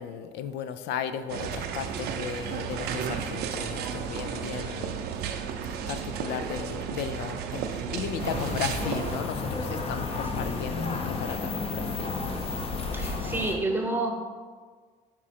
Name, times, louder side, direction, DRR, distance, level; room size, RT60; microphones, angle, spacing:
voice 1, 0.0-5.0 5.9-12.1, left 8 dB, 85° left, 11 dB, 0.4 m, -35 dB
sound 1, 1.3-9.2, right 7 dB, 75° right, 0.5 m, -33 dB
sound 2, 8.2-13.6, left 3 dB, 35° left, 0.7 m, -32 dB
voice 2, 10.2-10.6 12.9-14.1, right 2 dB, 10° right, 2 dB, 0.8 m, -30 dB
6.0 x 3.7 x 4.2 m, 1.5 s
cardioid pair, 110°, 17 cm